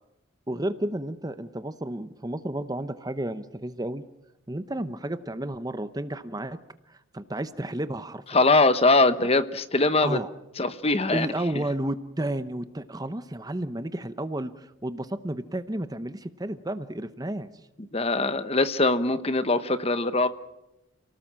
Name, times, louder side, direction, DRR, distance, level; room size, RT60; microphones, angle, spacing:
voice 1, 0.5-4.0 4.5-6.6 6.9-8.4 10.0-10.3 11.1-17.5, right 1 dB, 20° right, 12 dB, 0.8 m, -32 dB
voice 2, 8.3-10.2 10.6-11.3 11.6-11.7 17.9-20.3, left 2 dB, 30° left, 12 dB, 1.0 m, -22 dB
29.0 x 18.5 x 7.5 m, 0.92 s
head